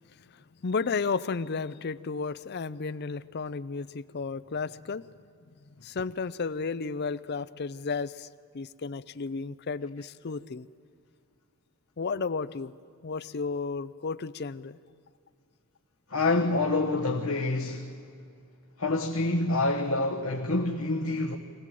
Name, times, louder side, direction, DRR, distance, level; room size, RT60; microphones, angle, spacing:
voice 1, 0.3-5.0 5.8-8.3 8.5-10.7 12.0-12.7 13.0-14.8, left 4 dB, 50° left, 0.5 m, -33 dB
voice 2, 16.1-17.9 18.8-21.4, left 2 dB, 70° left, 1.4 m, -27 dB
24.5 x 17.5 x 7.6 m
head